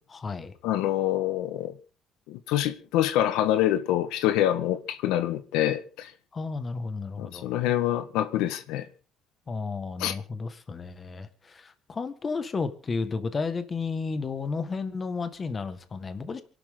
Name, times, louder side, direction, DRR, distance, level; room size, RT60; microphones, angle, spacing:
voice 1, 0.1-0.5 6.3-7.4 9.5-16.4, left 4 dB, 25° left, 1.7 m, -32 dB
voice 2, 0.6-1.7 2.3-6.1 7.2-8.9 10.0-10.1, left 12 dB, 85° left, 1.5 m, -26 dB
28.0 x 12.0 x 3.9 m
cardioid pair, 135°, 0 cm